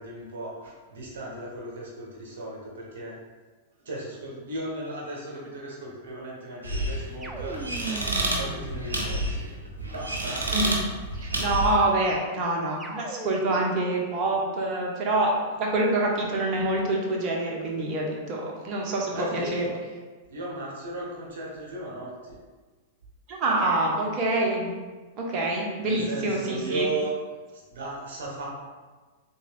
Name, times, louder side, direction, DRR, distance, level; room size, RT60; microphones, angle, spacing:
voice 1, 0.0-3.2 3.8-7.6 8.4-9.5 9.8-10.5 19.1-19.8 20.3-22.4 25.8-27.2 27.5-28.5, right 2 dB, 65° right, -3 dB, 1.0 m, -36 dB
sound 1, 6.6-11.9, right 1 dB, 85° right, 0.7 m, -30 dB
sound 2, 7.2-9.7 12.8-13.8, right 2 dB, 15° right, 0.5 m, -39 dB
voice 2, 11.2-19.7 23.3-24.7 25.2-26.9, right 2 dB, 40° right, -1 dB, 1.0 m, -26 dB
3.6 x 2.7 x 3.4 m, 1.3 s
figure-of-eight pair, 100°, 0 cm